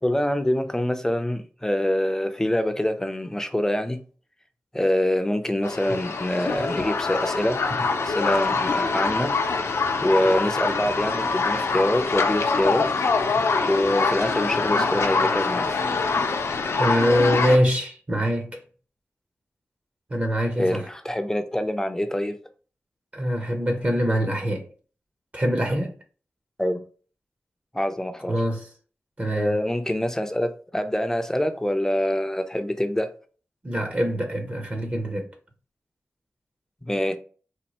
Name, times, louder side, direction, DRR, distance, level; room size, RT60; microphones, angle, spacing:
voice 1, 0.0-4.0 4.7-7.6 8.0-12.9 13.7-15.9 20.6-22.4 26.6-26.8 27.7-28.4 29.3-33.1 36.9-37.2, left 1 dB, 10° left, 0.4 m, -25 dB
sound 1, 5.6-17.6, left 4 dB, 75° left, 0.5 m, -24 dB
voice 2, 16.8-18.6 20.1-20.9 23.1-24.7 25.3-25.9 28.3-28.7 29.2-29.6 33.6-35.3, equal, 30° right, 0.8 m, -24 dB
4.3 x 2.3 x 2.9 m
wide cardioid pair, 85°, 5 cm